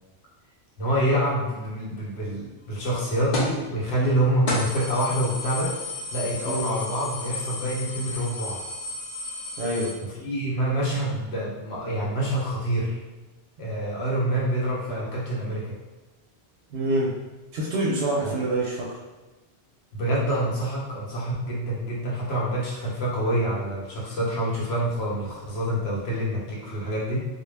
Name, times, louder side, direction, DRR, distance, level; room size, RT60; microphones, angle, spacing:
voice 1, 0.8-5.8 6.1-8.6 10.2-13.0 13.6-15.8 18.2-18.3 19.9-27.2, right 1 dB, 70° left, -5 dB, 1.0 m, -26 dB
sound 1, 3.3-3.6 4.0-4.1 4.5-9.9, left 2 dB, 50° left, 0.6 m, -33 dB
voice 2, 9.6-9.9 16.7-17.1 17.5-19.0, right 2 dB, 65° right, -4 dB, 0.7 m, -26 dB
2.2 x 2.1 x 3.3 m, 1.2 s
omnidirectional pair, 1.1 m